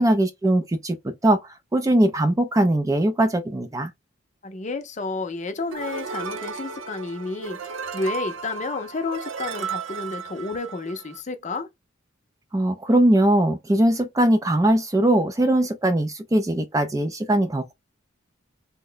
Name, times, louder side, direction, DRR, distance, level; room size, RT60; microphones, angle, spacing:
voice 1, 0.0-3.9 12.5-17.7, right 1 dB, 15° right, 0.4 m, -21 dB
voice 2, 4.4-11.7, left 3 dB, 35° left, 0.6 m, -31 dB
sound 1, 5.7-11.2, right 5 dB, 80° right, 0.6 m, -34 dB
3.1 x 2.1 x 3.7 m
head